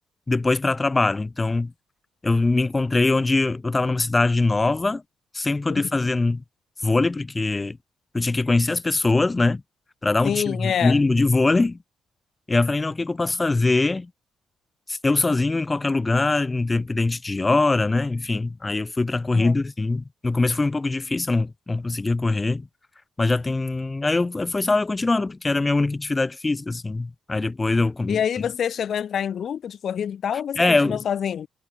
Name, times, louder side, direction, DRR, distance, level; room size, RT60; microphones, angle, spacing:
voice 1, 0.3-1.7 2.2-5.0 5.3-6.4 6.8-7.8 8.1-9.6 10.0-11.8 12.5-14.1 14.9-22.7 23.2-28.2 30.6-31.0, left 3 dB, 20° left, 2.5 m, -22 dB
voice 2, 10.2-11.0 19.3-19.5 28.1-31.5, left 8 dB, 60° left, 1.9 m, -26 dB
cardioid pair, 90°, 0 cm